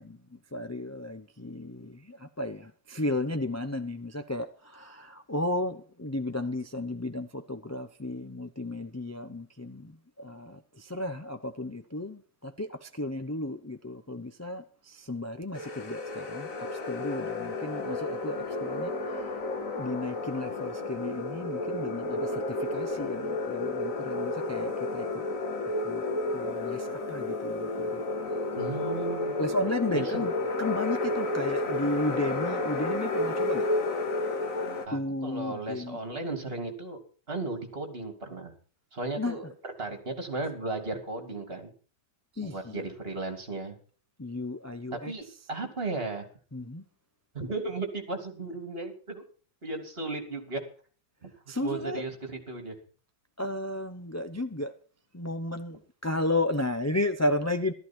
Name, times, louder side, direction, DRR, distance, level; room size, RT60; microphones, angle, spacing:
voice 1, 0.0-19.4 19.7-25.1 25.8-26.0 26.3-28.0 29.4-33.7 34.9-36.0 39.2-39.5 42.3-42.9 44.2-45.5 46.5-46.8 51.5-52.1 53.4-54.7 55.1-57.7, left 1 dB, 20° left, 0.5 m, -34 dB
sound 1, 15.5-34.9, left 2 dB, 50° left, 2.1 m, -31 dB
voice 2, 28.6-29.3 29.9-30.3 34.9-37.0 37.3-38.5 38.9-39.5 39.8-41.7 42.4-43.7 44.9-46.3 47.3-49.2 49.6-50.6 51.2-51.3 51.6-52.8, right 3 dB, 35° right, 3.2 m, -35 dB
14.5 x 13.5 x 4.5 m
omnidirectional pair, 1.9 m